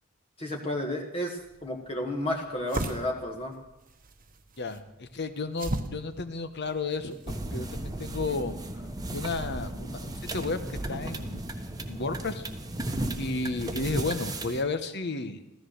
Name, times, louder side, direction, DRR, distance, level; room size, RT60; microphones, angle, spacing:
voice 1, 0.4-3.5, left 1 dB, 30° left, 1 dB, 1.4 m, -32 dB
sound 1, 1.4-7.7, right 2 dB, 40° right, 1.2 m, -39 dB
voice 2, 4.6-8.5 9.1-11.5 11.9-12.5 13.2-15.5, left 3 dB, 55° left, 10 dB, 1.2 m, -33 dB
sound 2, 7.3-14.6, right 1 dB, 20° right, 1.2 m, -35 dB
14.5 x 14.0 x 6.6 m, 0.95 s
head